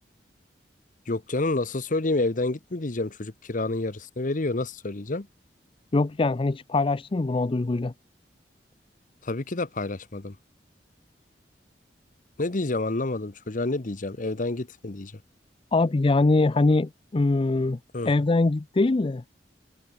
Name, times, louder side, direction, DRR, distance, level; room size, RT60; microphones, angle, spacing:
voice 1, 1.1-5.3 9.2-10.4 12.4-15.1 17.9-18.1, left 2 dB, 50° left, 1.1 m, -28 dB
voice 2, 5.9-7.9 15.7-17.8 18.0-19.2, left 3 dB, 30° left, 0.5 m, -23 dB
head